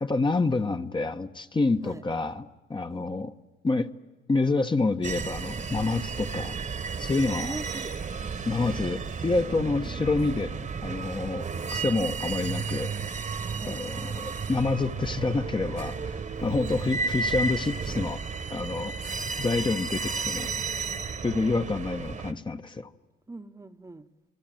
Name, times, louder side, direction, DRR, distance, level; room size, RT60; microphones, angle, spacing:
voice 1, 0.0-3.3 3.6-3.9 4.3-6.6 7.0-7.5 8.4-11.5 11.7-12.9 13.7-18.2 18.5-20.5 21.2-22.9, left 3 dB, 25° left, 1.1 m, -28 dB
sound 1, 5.0-22.3, right 5 dB, 40° right, 1.4 m, -33 dB
voice 2, 7.4-8.0 9.2-10.1 13.6-13.8 16.6-16.8 23.3-24.1, right 2 dB, 15° right, 1.1 m, -43 dB
29.0 x 22.0 x 9.1 m
cardioid pair, 90°, 20 cm